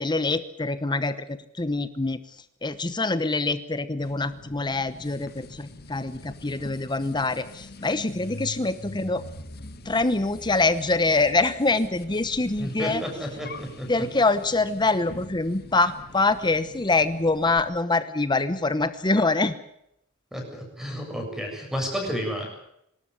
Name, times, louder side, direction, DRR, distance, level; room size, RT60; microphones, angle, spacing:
voice 1, 0.0-2.2 2.6-9.2 9.8-13.0 13.9-19.5, left 3 dB, 20° left, 13 dB, 1.0 m, -25 dB
sound 1, 4.0-17.7, left 1 dB, 50° left, 1.9 m, -43 dB
voice 2, 12.6-14.0 20.3-22.5, equal, ahead, 2 dB, 7.4 m, -31 dB
26.0 x 13.0 x 10.0 m, 0.78 s
head